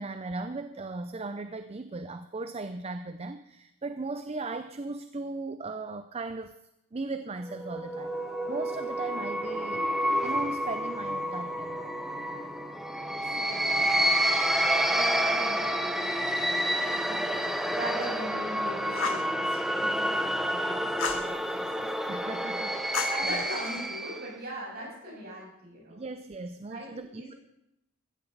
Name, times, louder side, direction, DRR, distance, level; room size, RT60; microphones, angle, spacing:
voice 1, 0.0-6.5 6.9-8.2 8.5-11.9 16.9-18.0 22.1-23.4 25.9-27.3, right 3 dB, 30° right, 10 dB, 0.5 m, -38 dB
sound 1, 7.5-24.3, equal, ahead, 0.8 m, -29 dB
voice 2, 13.2-21.9 22.5-26.0 26.7-27.4, right 1 dB, 50° right, -4 dB, 7.2 m, -41 dB
Fire, 18.9-19.3 21.0-21.3 22.9-23.9, left 5 dB, 75° left, 1.5 m, -33 dB
15.0 x 14.5 x 4.0 m, 0.83 s
head